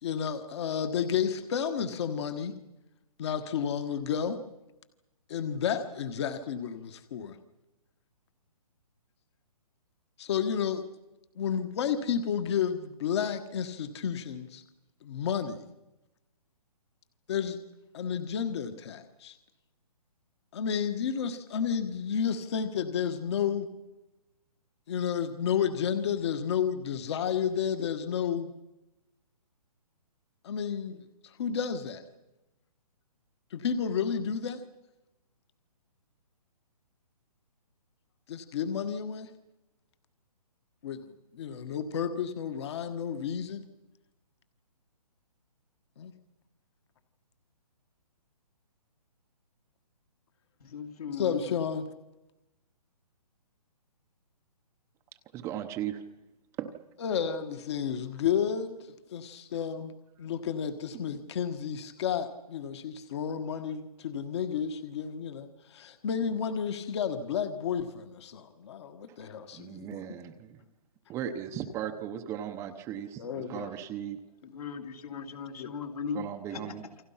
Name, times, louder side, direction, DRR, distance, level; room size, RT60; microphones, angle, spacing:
voice 1, 0.0-2.5 3.2-4.4 5.3-7.4 10.2-10.9 11.3-14.6 15.0-15.7 17.3-17.6 17.9-19.4 20.5-23.7 24.9-28.5 30.4-32.0 33.5-34.6 38.3-39.3 40.8-43.6 46.0-46.1 51.1-51.8 57.0-58.8 59.1-59.9 60.2-70.0 73.2-73.7 75.6-75.7, left 7 dB, 45° left, 8 dB, 1.5 m, -31 dB
voice 2, 50.6-51.4 74.4-76.2 76.5-76.6, left 6 dB, 65° left, 4 dB, 2.9 m, -37 dB
voice 3, 55.3-56.0 56.6-56.7 69.1-69.2 69.5-70.6 71.1-74.2 76.1-76.8, right 10 dB, 15° right, 6 dB, 0.8 m, -37 dB
28.5 x 25.0 x 5.8 m, 1.0 s
hypercardioid pair, 160°, 20 cm